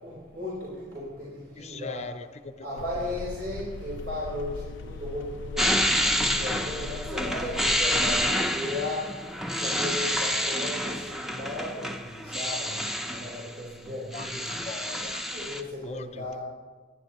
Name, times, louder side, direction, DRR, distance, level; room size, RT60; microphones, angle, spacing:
voice 1, 0.0-2.1 2.6-9.1 9.5-14.5 15.0-15.1 15.3-16.4, left 1 dB, 70° right, -7 dB, 4.2 m, -36 dB
voice 2, 1.6-2.5 14.1-14.3 14.6-15.2 15.8-16.4, left 4 dB, 35° left, 10 dB, 0.6 m, -40 dB
sound 1, 2.8-8.4, left 4 dB, 90° left, 0.4 m, -39 dB
sound 2, 5.6-13.5 13.9-15.6, equal, ahead, 0.7 m, -28 dB
24.0 x 11.0 x 3.0 m, 1.5 s
head